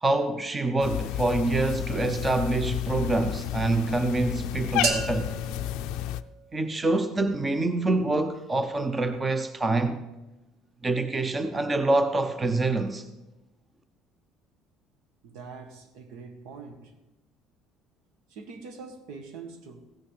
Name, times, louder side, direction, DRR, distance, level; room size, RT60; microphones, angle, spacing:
voice 1, 0.0-5.3 6.5-10.0 10.8-13.0, right 2 dB, 15° right, 0.6 m, -26 dB
Cat, 0.8-6.2, left 12 dB, 80° left, 0.4 m, -31 dB
sound 1, 4.8-6.8, right 3 dB, 50° right, 1.7 m, -32 dB
voice 2, 15.2-16.9 18.3-19.9, right 4 dB, 80° right, 1.6 m, -43 dB
16.0 x 6.5 x 6.5 m
cardioid pair, 155°, 0 cm